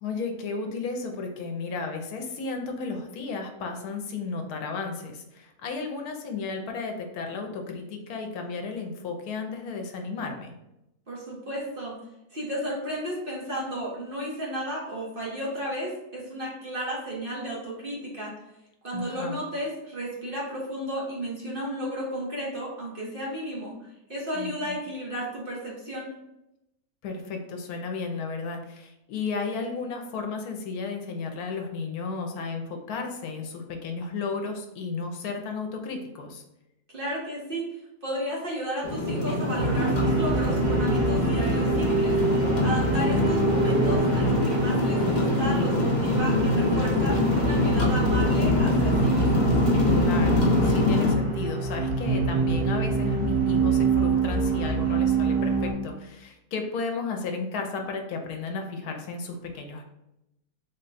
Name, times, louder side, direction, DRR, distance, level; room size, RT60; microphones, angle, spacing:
voice 1, 0.0-10.5 18.9-19.4 24.4-24.8 27.0-36.4 49.8-59.8, left 4 dB, 75° left, 3 dB, 1.0 m, -33 dB
voice 2, 11.1-12.0 12.3-18.3 18.8-23.8 24.1-26.1 36.9-42.2 42.6-49.5, equal, 45° right, -5 dB, 0.9 m, -33 dB
sound 1, 38.8-51.1, left 2 dB, 50° left, 0.5 m, -24 dB
sound 2, 39.6-55.7, right 4 dB, 80° right, 1.3 m, -26 dB
3.7 x 2.2 x 3.9 m, 0.88 s
omnidirectional pair, 1.6 m